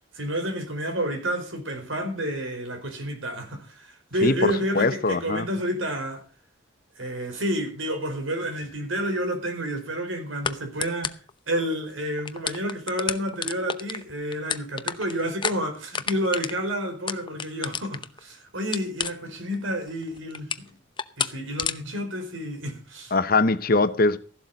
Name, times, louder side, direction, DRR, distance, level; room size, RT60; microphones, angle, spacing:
voice 1, 0.1-6.2 7.0-11.1 11.5-20.8 21.2-23.2, equal, 85° right, 4.7 m, -30 dB
voice 2, 4.2-5.5 23.1-24.2, left 3 dB, 50° left, 1.0 m, -22 dB
sound 1, 8.6-8.8 10.4-10.6 10.8-11.3 11.8-11.9 12.2-18.2 18.7-19.5 19.9-20.7 21.0-21.3 21.6-21.8, left 6 dB, 25° left, 0.7 m, -30 dB
15.0 x 12.0 x 4.1 m
head